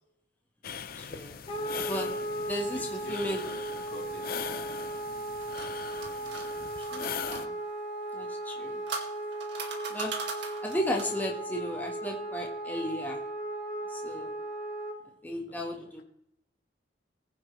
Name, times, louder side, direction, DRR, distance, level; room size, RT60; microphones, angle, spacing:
sound 1, 0.6-7.5, left 7 dB, 55° left, 0.7 m, -40 dB
voice 1, 1.0-1.4 1.8-2.2 2.4-3.4 6.2-6.4 6.8-7.5 8.1-8.8 9.9-13.2 13.9-14.3 15.2-16.0, left 1 dB, 10° left, 0 dB, 1.6 m, -35 dB
Wind instrument woodwind instrument, 1.5-15.0, right 1 dB, 30° left, 3.7 m, -37 dB
voice 2, 1.6-1.9 2.7-3.6 3.9-4.8 15.5-16.0, left 1 dB, 75° left, -1 dB, 3.8 m, -48 dB
sound 2, 5.1-7.4 8.4-11.2, right 4 dB, 65° right, 2.3 m, -40 dB
20.0 x 9.9 x 3.3 m, 0.76 s
head